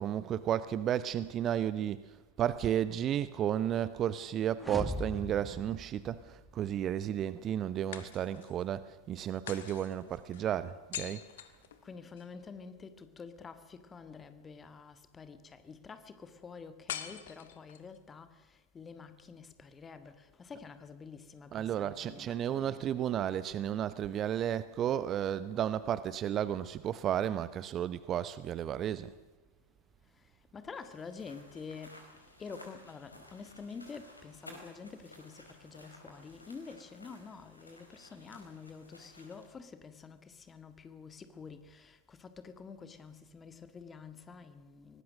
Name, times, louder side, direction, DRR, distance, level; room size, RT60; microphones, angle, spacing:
voice 1, 0.0-2.0 2.4-11.2 21.5-29.1, right 10 dB, 30° right, 0.8 m, -33 dB
sound 1, 4.6-6.7, left 1 dB, ahead, 1.6 m, -40 dB
sound 2, 4.8-5.9 7.9-8.7 9.5-12.3 16.9-18.0, left 10 dB, 60° left, 1.7 m, -45 dB
voice 2, 11.8-22.9 30.2-30.3 30.5-32.0 32.4-45.0, left 5 dB, 20° left, 1.9 m, -48 dB
sound 3, 30.8-39.5, left 1 dB, 85° left, 4.5 m, -55 dB
24.0 x 19.5 x 6.5 m
figure-of-eight pair, 90°, 0 cm